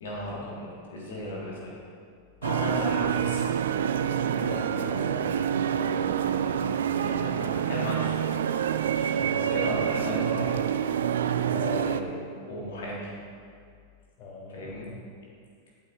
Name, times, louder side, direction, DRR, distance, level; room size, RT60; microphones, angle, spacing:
voice 1, 0.0-1.8 2.4-3.5 6.2-8.4 8.9-10.6 11.6-12.0 12.5-13.1 14.5-14.9, left 1 dB, 60° left, -4 dB, 1.8 m, -36 dB
sound 1, 2.4-12.0, right 9 dB, 65° right, 0.3 m, -27 dB
voice 2, 2.6-3.0 4.3-5.4 5.7-6.2 9.1-9.7 11.5-11.9 14.2-14.9, left 3 dB, 35° left, -3 dB, 2.3 m, -40 dB
10.0 x 8.8 x 2.6 m, 2.2 s
figure-of-eight pair, 90°, 0 cm